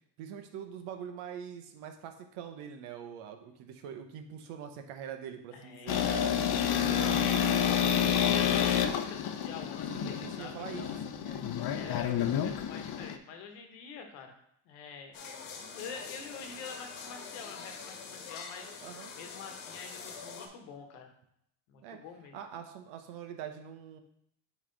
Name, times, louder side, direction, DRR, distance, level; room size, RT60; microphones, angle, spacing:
voice 1, 0.2-6.3 6.8-7.5 9.9-11.5 18.8-19.1 21.8-22.0 22.3-24.0, right 8 dB, 80° right, 6 dB, 1.0 m, -44 dB
voice 2, 5.5-6.3 6.8-11.0 11.7-14.4 14.6-15.2 15.7-21.1 21.7-22.3, left 6 dB, 90° left, 4 dB, 1.2 m, -46 dB
sound 1, 5.9-13.2, left 8 dB, 50° left, 0.7 m, -29 dB
sound 2, 15.1-20.5, left 5 dB, 70° left, 1.2 m, -45 dB
8.3 x 3.2 x 3.8 m, 0.72 s
supercardioid pair, 90°, 50 cm